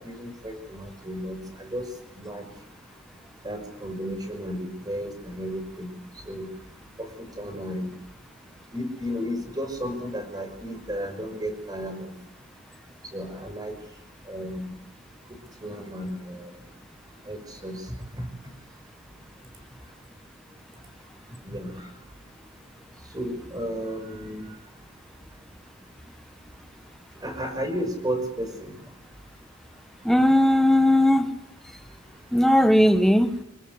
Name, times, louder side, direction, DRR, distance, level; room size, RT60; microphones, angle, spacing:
voice 1, 0.0-1.9 2.2-2.4 3.4-6.0 6.3-6.5 7.0-7.1 7.4-8.0 8.7-12.1 13.1-13.8 14.3-14.7 15.6-16.5 17.3-17.8 18.2-18.3 21.5-21.9 23.1-24.5 27.2-28.8, equal, 20° right, 6 dB, 5.9 m, -33 dB
voice 2, 30.0-31.3 32.3-33.4, left 1 dB, ahead, 8 dB, 1.4 m, -18 dB
27.0 x 21.0 x 8.2 m, 0.87 s
head